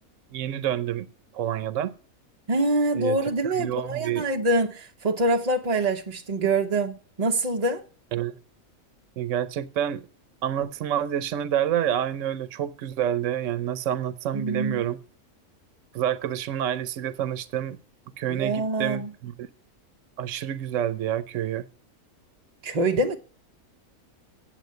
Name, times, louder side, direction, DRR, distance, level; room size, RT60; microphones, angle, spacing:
voice 1, 0.3-1.1 1.3-1.9 2.9-3.2 3.6-4.3 8.1-8.4 9.2-10.1 10.4-15.0 15.9-17.8 18.2-19.3 20.2-21.6, right 10 dB, 65° right, 1.1 m, -28 dB
voice 2, 2.5-7.8 14.3-14.9 18.3-19.1 22.6-23.2, right 2 dB, 35° right, 0.7 m, -25 dB
9.3 x 7.6 x 9.3 m
omnidirectional pair, 1.5 m